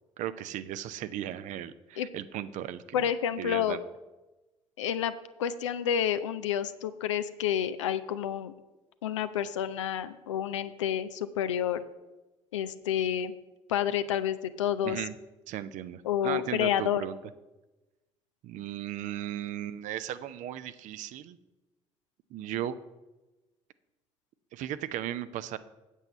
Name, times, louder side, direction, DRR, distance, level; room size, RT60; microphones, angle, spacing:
voice 1, 0.2-3.0 3.4-3.8 14.8-15.1 15.5-17.2 18.4-21.4 22.3-22.8 24.5-25.6, right 11 dB, 50° right, 14 dB, 0.6 m, -36 dB
voice 2, 2.9-3.8 4.8-5.1 5.4-8.5 9.0-11.8 12.5-13.3 13.7-15.0 16.0-17.0, left 9 dB, 75° left, 12 dB, 0.5 m, -29 dB
8.2 x 7.9 x 5.4 m, 1.1 s
figure-of-eight pair, 50°, 16 cm